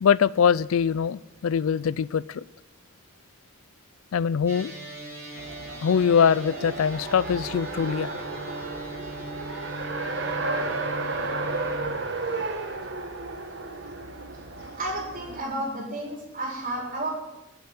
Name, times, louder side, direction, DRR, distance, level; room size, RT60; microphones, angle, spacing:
voice 1, 0.0-2.4 4.1-4.7 5.8-8.2, left 7 dB, 85° left, 20 dB, 0.4 m, -23 dB
sound 1, 4.5-11.9, right 1 dB, 10° right, 4.3 m, -40 dB
Race car auto racing, 5.4-15.4, right 3 dB, 55° right, 1.5 m, -33 dB
voice 2, 14.8-17.1, right 1 dB, 40° right, -1 dB, 4.4 m, -31 dB
12.0 x 8.1 x 9.5 m, 0.91 s
head